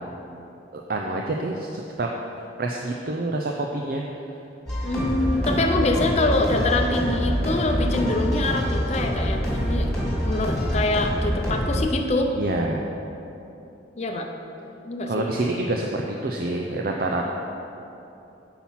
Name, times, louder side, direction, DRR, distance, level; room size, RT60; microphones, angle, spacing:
voice 1, 0.7-2.1 2.6-4.0 12.3-12.8 15.0-17.3, right 2 dB, 55° right, 0 dB, 0.5 m, -27 dB
sound 1, 4.7-11.8, equal, 5° left, 2.2 m, -25 dB
voice 2, 4.8-9.9 10.3-12.3 14.0-14.3 14.8-15.2, left 2 dB, 40° left, 3 dB, 0.7 m, -25 dB
8.6 x 5.9 x 5.7 m, 2.9 s
head